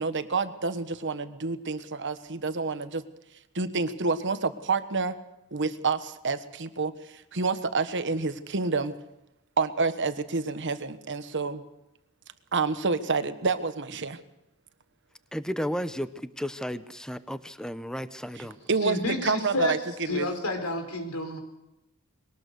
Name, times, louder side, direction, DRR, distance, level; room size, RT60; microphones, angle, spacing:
voice 1, 0.0-3.0 3.5-5.1 5.5-9.0 9.6-11.6 12.5-14.2 18.4-20.3, right 4 dB, 55° right, 11 dB, 1.3 m, -28 dB
voice 2, 15.3-18.6, equal, 5° left, 12 dB, 0.8 m, -33 dB
voice 3, 18.8-21.4, left 2 dB, 85° left, 6 dB, 4.2 m, -30 dB
21.5 x 18.5 x 6.7 m, 0.91 s
head